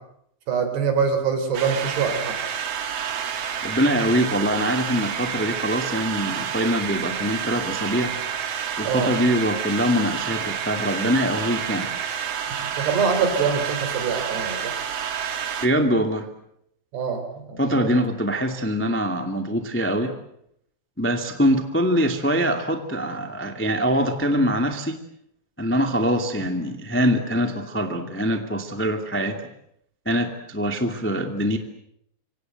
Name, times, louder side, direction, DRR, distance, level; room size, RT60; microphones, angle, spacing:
voice 1, 0.5-2.4 8.8-9.1 12.8-14.7 16.9-18.0, right 6 dB, 70° right, 7 dB, 6.1 m, -24 dB
sound 1, 1.5-15.7, right 8 dB, 55° right, 2.0 m, -29 dB
voice 2, 3.6-8.1 8.8-12.0 15.6-16.3 17.6-20.1 21.0-25.0 25.6-29.4 30.0-31.6, equal, 10° left, 5 dB, 0.5 m, -23 dB
27.0 x 25.0 x 7.9 m, 0.76 s
omnidirectional pair, 5.0 m